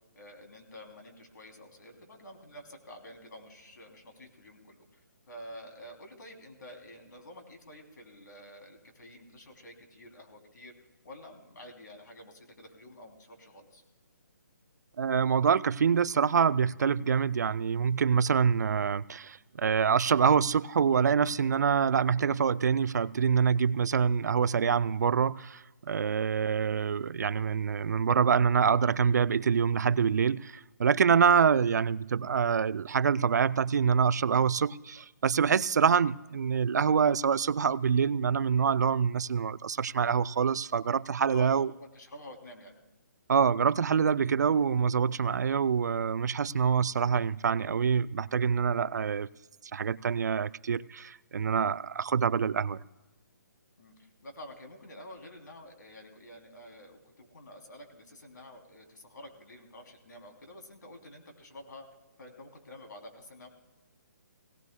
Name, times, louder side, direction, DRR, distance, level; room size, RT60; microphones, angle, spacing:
voice 1, 0.1-4.8 5.3-10.7 11.0-13.8 41.3-42.8 53.8-61.9 62.2-63.5, left 1 dB, 80° left, 3.0 m, -49 dB
voice 2, 15.0-41.7 43.3-49.3 49.7-52.8, right 6 dB, 70° right, 0.4 m, -26 dB
18.5 x 17.5 x 2.2 m
hypercardioid pair, 175°, 10 cm